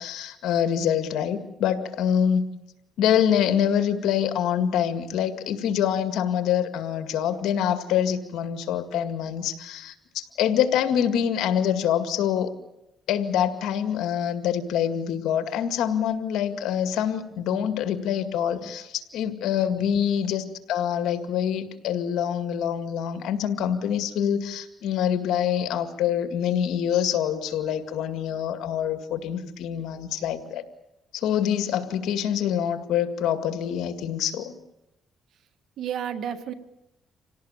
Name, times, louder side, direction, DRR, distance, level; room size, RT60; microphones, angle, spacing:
voice 1, 0.0-2.5 3.0-12.5 13.1-30.6 31.1-34.5, left 9 dB, 85° left, 9 dB, 2.1 m, -25 dB
voice 2, 17.3-17.7 18.5-18.9 19.7-20.0 31.7-31.8 35.8-36.5, right 9 dB, 70° right, 9 dB, 1.8 m, -34 dB
27.0 x 17.5 x 8.9 m, 0.88 s
cardioid pair, 90°, 0 cm